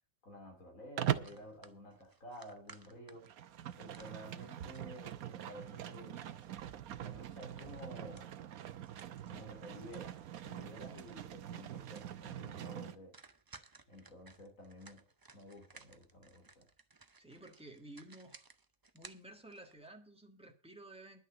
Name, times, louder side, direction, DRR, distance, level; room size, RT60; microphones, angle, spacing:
voice 1, 0.2-3.3 3.8-6.3 6.9-8.3 9.3-13.2 13.9-15.0 15.3-16.7, equal, 70° left, 3 dB, 3.5 m, -52 dB
Livestock farm animals working animals, 1.0-1.4 3.1-13.0, right 11 dB, 85° right, 1.2 m, -42 dB
sound 1, 1.1-5.2 5.6-10.3 10.6-11.2 11.5-11.6 11.8-12.3 12.6-12.8 13.1-19.9, right 3 dB, 30° right, 0.4 m, -60 dB
voice 2, 17.2-18.4 18.9-21.2, right 1 dB, 5° right, 3 dB, 1.7 m, -53 dB
11.0 x 6.5 x 8.8 m, 0.38 s
omnidirectional pair, 1.5 m